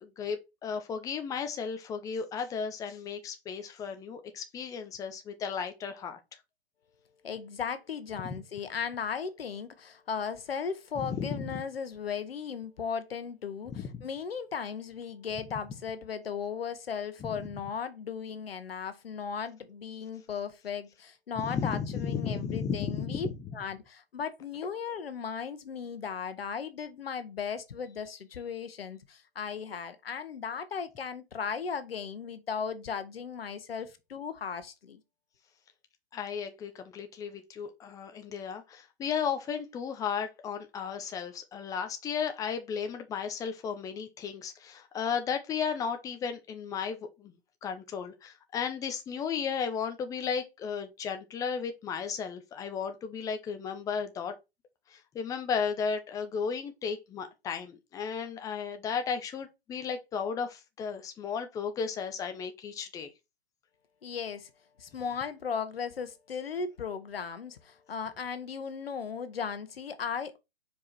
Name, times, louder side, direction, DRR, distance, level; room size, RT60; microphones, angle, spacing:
voice 1, 0.0-6.2 8.2-8.3 11.0-11.5 13.7-14.0 17.2-17.3 21.4-23.3 36.1-47.3 47.6-54.3 54.9-63.1, left 6 dB, 10° left, 0.7 m, -34 dB
voice 2, 7.2-23.3 23.5-35.0 64.0-64.5 64.8-70.4, left 6 dB, 70° left, 1.2 m, -36 dB
4.9 x 4.7 x 4.5 m
figure-of-eight pair, 130°, 31 cm